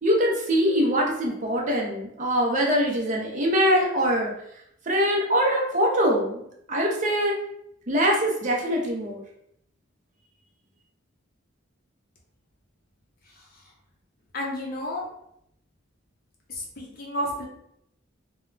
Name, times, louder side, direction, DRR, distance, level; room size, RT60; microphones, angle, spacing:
voice 1, 0.0-4.3 4.9-6.4 6.7-7.3 7.9-9.2, equal, 35° right, -1 dB, 0.5 m, -23 dB
voice 2, 14.3-15.1 16.5-17.5, equal, 45° left, -1 dB, 0.7 m, -31 dB
2.2 x 2.1 x 3.7 m, 0.74 s
head